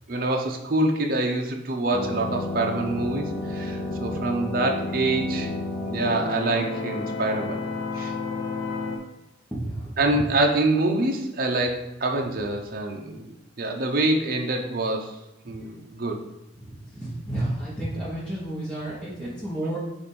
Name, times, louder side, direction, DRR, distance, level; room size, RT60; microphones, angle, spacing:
voice 1, 0.1-5.5 5.8-7.6 7.9-8.1 10.0-15.2 15.5-16.2, right 2 dB, 45° right, 1 dB, 0.7 m, -26 dB
sound 1, 1.9-9.0, left 3 dB, 70° left, 0.8 m, -31 dB
voice 2, 9.5-10.3 16.5-19.8, right 1 dB, 5° left, -10 dB, 1.1 m, -31 dB
7.0 x 2.6 x 5.4 m, 0.92 s
head